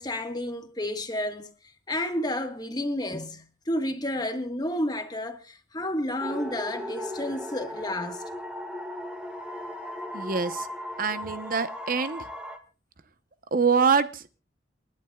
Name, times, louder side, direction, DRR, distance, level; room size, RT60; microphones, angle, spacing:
voice 1, 0.0-1.5 1.9-8.2, left 1 dB, 20° left, 1.4 m, -31 dB
sound 1, 6.2-12.6, left 1 dB, 5° right, 1.7 m, -37 dB
voice 2, 10.1-10.7 11.0-12.3 13.5-14.4, right 5 dB, 50° right, 0.8 m, -25 dB
28.5 x 11.0 x 2.3 m
head